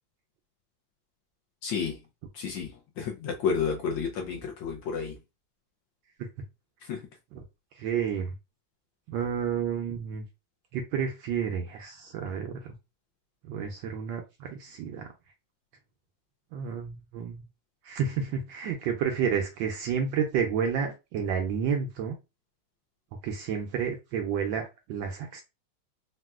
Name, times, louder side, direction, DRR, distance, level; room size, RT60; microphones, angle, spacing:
voice 1, 1.6-2.0 2.3-5.2 6.8-7.1, left 6 dB, 70° left, 1.2 m, -31 dB
voice 2, 7.8-8.3 9.1-10.2 10.7-12.7 13.5-15.1 16.5-17.4 17.8-22.2 23.2-25.4, right 7 dB, 75° right, 1.1 m, -30 dB
4.1 x 2.2 x 2.3 m
omnidirectional pair, 2.4 m